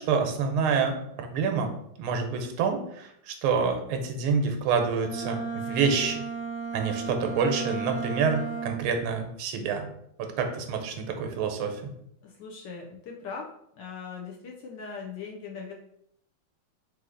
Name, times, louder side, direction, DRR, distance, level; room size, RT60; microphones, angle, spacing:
voice 1, 0.0-1.7 2.0-6.2 6.7-9.9 10.2-11.9, right 5 dB, 80° right, 5 dB, 1.5 m, -27 dB
Bowed string instrument, 4.9-9.0, right 5 dB, 65° right, 1.0 m, -34 dB
voice 2, 12.2-13.5 13.7-15.7, left 5 dB, 70° left, -1 dB, 1.1 m, -40 dB
4.1 x 2.7 x 3.7 m, 0.74 s
omnidirectional pair, 2.3 m